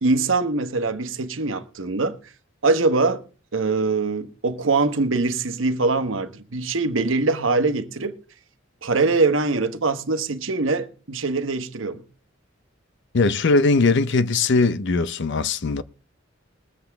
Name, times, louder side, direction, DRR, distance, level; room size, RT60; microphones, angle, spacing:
voice 1, 0.0-2.2 2.6-3.2 3.5-8.1 8.8-12.0, right 3 dB, 75° right, 1.1 m, -23 dB
voice 2, 13.1-15.8, left 3 dB, 60° left, 0.6 m, -20 dB
21.0 x 7.9 x 3.5 m
head